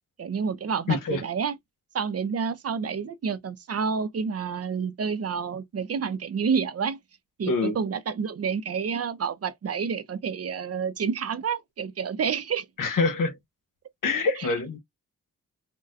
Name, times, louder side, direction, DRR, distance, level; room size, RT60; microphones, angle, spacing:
voice 1, 0.2-1.6 1.9-7.0 7.4-12.7 14.4-14.5, right 6 dB, 50° right, 0.5 m, -29 dB
voice 2, 0.9-1.2 7.5-7.8 12.8-13.4 14.0-14.8, left 3 dB, 80° left, 0.9 m, -25 dB
4.0 x 2.1 x 2.5 m
wide cardioid pair, 105°, 32 cm